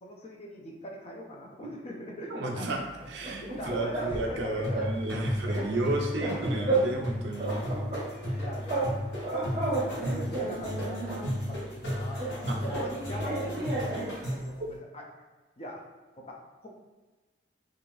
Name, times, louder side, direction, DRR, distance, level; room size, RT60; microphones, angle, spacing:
voice 1, 0.0-2.8 3.4-4.9 7.8-8.0 8.3-9.0 9.4-9.8 10.1-15.0 15.6-15.8 16.2-16.7, equal, 35° left, 0 dB, 0.4 m, -42 dB
voice 2, 2.3-2.8 3.1-7.6 12.5-12.6, right 1 dB, 70° right, 1 dB, 0.5 m, -32 dB
sound 1, 3.0-4.4 4.7-4.9 5.2-7.1 7.4-8.9 9.2-11.4 12.2-14.2, right 3 dB, 30° right, 0.6 m, -32 dB
sound 2, 4.6-14.6, equal, 70° left, 1.0 m, -34 dB
2.5 x 2.3 x 3.0 m, 1.2 s
head